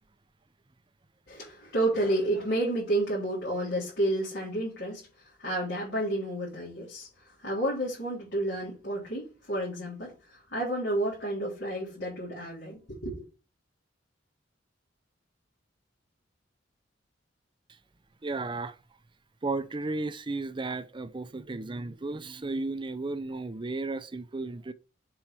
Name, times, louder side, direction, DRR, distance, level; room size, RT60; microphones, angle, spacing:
voice 1, 1.3-5.1 5.4-7.1 7.4-13.2, right 1 dB, 60° left, 3.6 m, -30 dB
voice 2, 18.2-18.7 19.4-24.7, right 3 dB, 25° right, 0.5 m, -34 dB
7.3 x 4.7 x 4.5 m
head